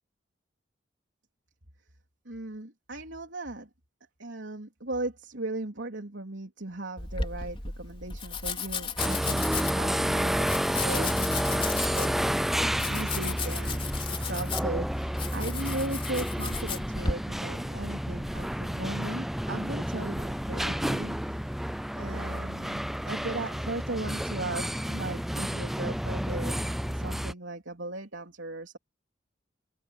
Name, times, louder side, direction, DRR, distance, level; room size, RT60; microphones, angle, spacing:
voice 1, 2.3-3.7 4.2-9.5 9.8-21.4 21.9-28.8, right 2 dB, 80° right, 3.6 m, -38 dB
Domestic sounds home sounds, 7.0-17.1, left 5 dB, 30° left, 4.1 m, -35 dB
sound 1, 9.0-27.3, equal, ahead, 0.4 m, -30 dB
open air
head